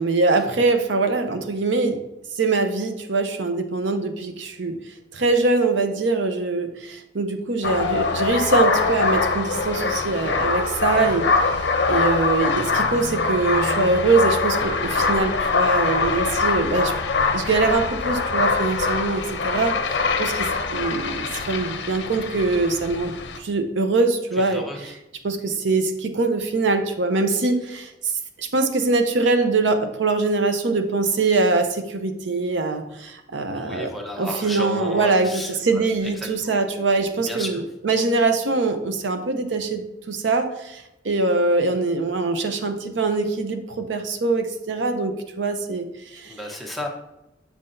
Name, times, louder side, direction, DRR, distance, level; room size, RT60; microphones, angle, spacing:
voice 1, 0.0-2.0 2.3-4.8 5.1-16.9 17.3-24.6 25.2-28.1 28.4-45.9 46.1-46.3, right 3 dB, 85° right, 7 dB, 0.7 m, -23 dB
sound 1, 7.6-23.4, left 4 dB, 65° left, 0.6 m, -23 dB
voice 2, 24.4-24.9 33.5-36.5 37.2-37.6 46.2-46.9, left 1 dB, ahead, -1 dB, 0.9 m, -33 dB
7.4 x 5.7 x 2.6 m, 0.91 s
head